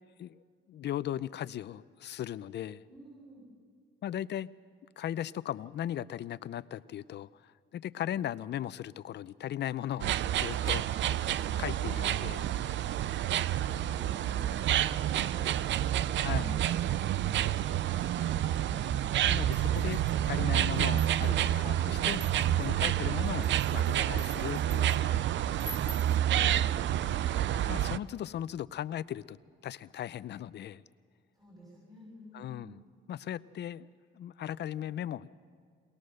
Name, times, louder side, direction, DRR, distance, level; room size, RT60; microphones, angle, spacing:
voice 1, 0.7-2.8 4.0-4.5 5.0-11.1 11.6-12.4 16.1-16.5 19.3-25.2 27.7-29.4 29.6-30.8 32.3-32.8 33.1-33.9 34.1-35.3, left 11 dB, 60° left, 17 dB, 0.5 m, -37 dB
voice 2, 2.9-3.5 11.6-12.0 12.7-13.1 13.7-19.1 25.8-26.8 31.3-32.8, equal, 20° right, -3 dB, 6.4 m, -51 dB
sound 1, 10.0-28.0, right 11 dB, 70° right, 0.5 m, -29 dB
sound 2, 19.5-20.3 20.8-21.5 22.1-22.7 23.3-25.0 25.6-26.2, equal, 5° left, 0.8 m, -47 dB
22.5 x 19.5 x 6.5 m, 2.1 s
cardioid pair, 90°, 20 cm